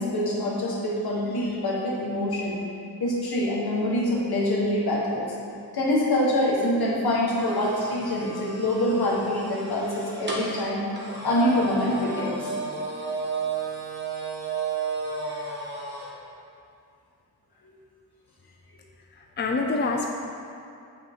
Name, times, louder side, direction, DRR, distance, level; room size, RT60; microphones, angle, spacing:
voice 1, 0.0-2.6 3.0-5.3 5.7-10.8 11.2-12.5, left 1 dB, 70° left, -4 dB, 1.7 m, -25 dB
sound 1, 7.4-16.1, right 4 dB, 30° right, 1.1 m, -33 dB
voice 2, 19.1-20.1, left 3 dB, 30° left, 2 dB, 0.4 m, -26 dB
8.3 x 6.3 x 3.8 m, 2.5 s
wide cardioid pair, 175°, 39 cm